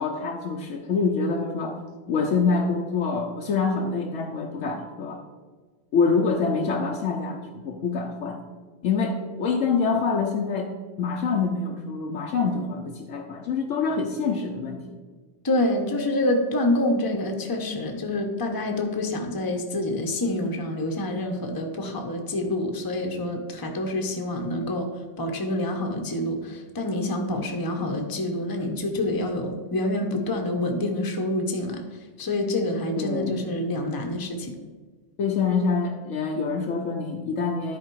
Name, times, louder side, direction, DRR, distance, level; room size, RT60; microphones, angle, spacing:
voice 1, 0.0-1.8 2.1-5.2 5.9-8.4 8.8-10.7 11.0-15.0 33.0-33.5 35.2-37.8, left 4 dB, 80° left, 1 dB, 1.1 m, -26 dB
voice 2, 15.4-24.9 25.2-31.8 32.2-34.5, left 1 dB, 20° left, 3 dB, 0.8 m, -27 dB
11.0 x 4.5 x 4.6 m, 1.4 s
omnidirectional pair, 1.3 m